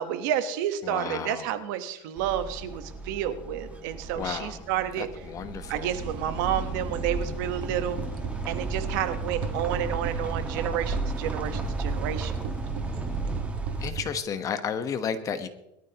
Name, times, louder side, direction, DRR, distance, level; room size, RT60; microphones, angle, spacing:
voice 1, 0.0-5.1 5.7-8.0 8.5-12.3, right 10 dB, 75° right, 10 dB, 1.3 m, -30 dB
voice 2, 0.8-1.5 4.1-4.7 5.0-5.9 13.8-15.5, left 7 dB, 35° left, 10 dB, 1.2 m, -32 dB
sound 1, 2.2-13.9, right 3 dB, 15° right, 1.6 m, -36 dB
sound 2, 5.7-14.2, right 7 dB, 45° right, 1.1 m, -37 dB
sound 3, 6.0-13.4, right 2 dB, 5° left, 1.5 m, -36 dB
21.5 x 12.5 x 3.0 m, 0.87 s
supercardioid pair, 130°, 10 cm